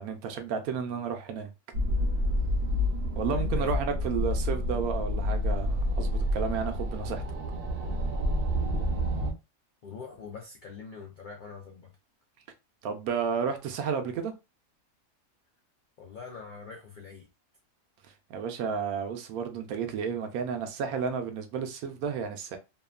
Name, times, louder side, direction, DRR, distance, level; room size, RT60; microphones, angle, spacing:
voice 1, 0.0-1.5 3.2-7.2 12.8-14.3 18.3-22.6, right 6 dB, 75° right, 1.0 m, -32 dB
sound 1, 1.7-9.3, left 1 dB, 55° right, 0.7 m, -28 dB
voice 2, 3.3-4.3 9.8-11.9 16.0-17.3, left 5 dB, 85° left, 0.4 m, -44 dB
2.8 x 2.3 x 2.3 m
omnidirectional pair, 1.6 m